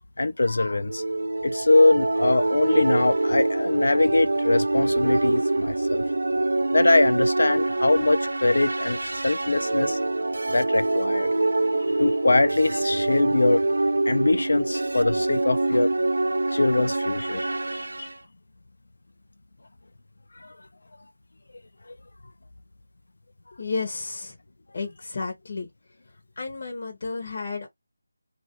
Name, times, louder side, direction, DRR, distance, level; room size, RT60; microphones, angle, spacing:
voice 1, 0.2-1.0 1.4-6.0 6.7-10.0 10.5-11.3 12.0-13.6 14.1-15.9 16.5-18.1 20.4-20.5, left 2 dB, 65° left, 0.4 m, -22 dB
sound 1, 0.9-18.1, right 2 dB, 65° right, 0.4 m, -25 dB
voice 2, 23.6-24.3 24.7-25.7 26.4-27.7, left 4 dB, 25° left, 0.7 m, -32 dB
2.8 x 2.2 x 2.9 m
figure-of-eight pair, 180°, 0 cm